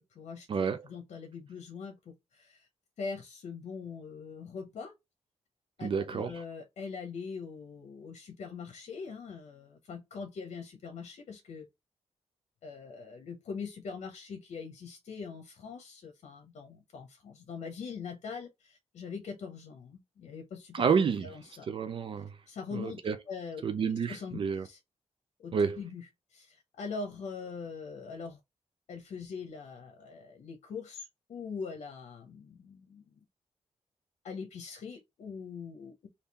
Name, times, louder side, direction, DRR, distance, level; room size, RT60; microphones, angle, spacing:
voice 1, 0.0-2.7 3.0-4.9 5.8-11.7 12.6-20.8 21.2-21.7 22.5-23.6 23.9-24.8 25.4-28.4 28.9-33.2 34.2-36.1, left 5 dB, 80° left, 0.8 m, -42 dB
voice 2, 5.8-6.3 20.7-21.3 21.7-22.3 22.8-23.1 23.6-24.7 25.5-25.8, right 6 dB, 50° right, 0.4 m, -29 dB
3.6 x 2.7 x 4.1 m
wide cardioid pair, 145°, 12 cm